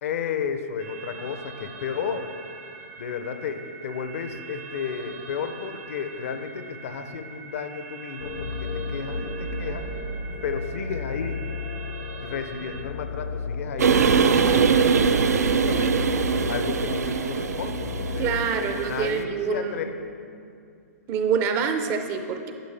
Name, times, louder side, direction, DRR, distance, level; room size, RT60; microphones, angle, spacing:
voice 1, 0.0-2.3 3.0-9.8 10.4-11.4 12.2-16.0 16.5-19.9, left 6 dB, 60° left, 8 dB, 0.6 m, -33 dB
sound 1, 0.8-12.8, right 5 dB, 55° right, 0.9 m, -43 dB
sound 2, 8.2-18.5, left 3 dB, 85° left, 0.9 m, -33 dB
sound 3, 13.8-19.2, right 5 dB, 85° right, 0.4 m, -22 dB
voice 2, 18.2-19.9 21.1-22.5, right 6 dB, 30° right, 7 dB, 0.5 m, -26 dB
10.0 x 5.1 x 3.3 m, 2.4 s
hypercardioid pair, 130°, 8 cm